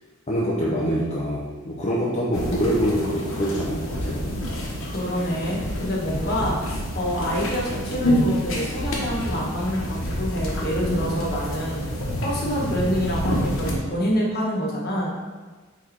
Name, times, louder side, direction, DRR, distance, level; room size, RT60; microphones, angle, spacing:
voice 1, 0.3-4.3 6.1-6.5 10.7-11.3, equal, 30° left, -7 dB, 0.8 m, -25 dB
sound 1, 2.3-13.7, equal, 70° left, 1.2 m, -28 dB
voice 2, 4.9-11.8 12.2-15.1, equal, 50° left, -5 dB, 1.5 m, -27 dB
4.7 x 4.2 x 4.7 m, 1.4 s
head